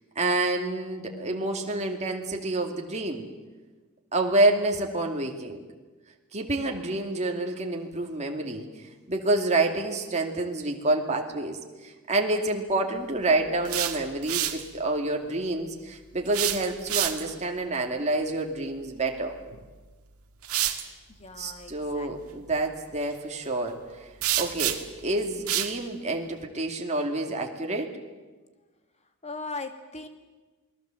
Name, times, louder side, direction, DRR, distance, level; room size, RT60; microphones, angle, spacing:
voice 1, 0.2-3.3 4.1-5.7 6.3-8.7 9.1-11.6 11.8-19.4 21.4-24.1 24.4-27.9, right 2 dB, 30° right, 2 dB, 2.5 m, -28 dB
sound 1, 13.5-14.7 16.3-17.4 19.5-19.6 20.4-20.9 24.2-25.0 25.5-25.8, right 12 dB, 70° right, 1.9 m, -28 dB
voice 2, 21.1-22.4 29.2-30.1, left 3 dB, 30° left, 6 dB, 2.3 m, -39 dB
28.5 x 20.0 x 7.8 m, 1.3 s
head